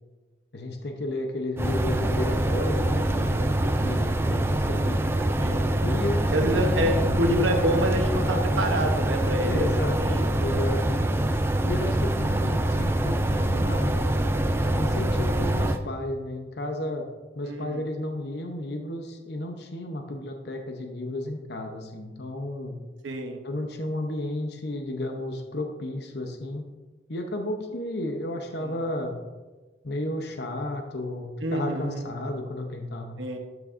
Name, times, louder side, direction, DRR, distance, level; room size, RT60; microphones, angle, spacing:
voice 1, 0.5-5.0 5.8-7.3 9.4-11.0 11.6-14.0 14.7-17.1 17.4-22.8 23.4-26.6 27.1-29.2 29.8-33.2, left 1 dB, 60° left, 4 dB, 0.8 m, -33 dB
sound 1, 1.6-15.8, right 1 dB, 15° right, 0.3 m, -24 dB
voice 2, 3.1-3.7 5.4-5.7 6.3-10.6 17.4-17.8 23.0-23.4 28.6-28.7 31.4-32.0 33.2-33.4, right 1 dB, 80° right, 3 dB, 0.9 m, -28 dB
12.0 x 6.3 x 2.6 m, 1.2 s
head